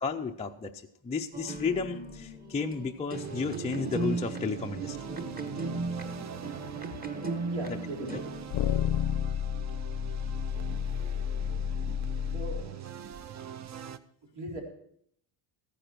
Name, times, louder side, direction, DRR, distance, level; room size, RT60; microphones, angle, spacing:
voice 1, 0.0-0.7 1.0-5.0 11.0-11.1, left 5 dB, 15° left, 2 dB, 0.4 m, -32 dB
sound 1, 1.3-9.0, right 3 dB, 20° right, 1.0 m, -37 dB
sound 2, 3.1-14.0, right 9 dB, 35° right, 0.5 m, -43 dB
sound 3, 6.9-7.0 8.5-12.6, left 10 dB, 60° left, 0.6 m, -31 dB
voice 2, 7.4-8.4 12.3-12.8 14.4-14.6, right 2 dB, 75° right, -1 dB, 4.0 m, -39 dB
14.5 x 10.0 x 4.5 m, 0.69 s
cardioid pair, 145°, 49 cm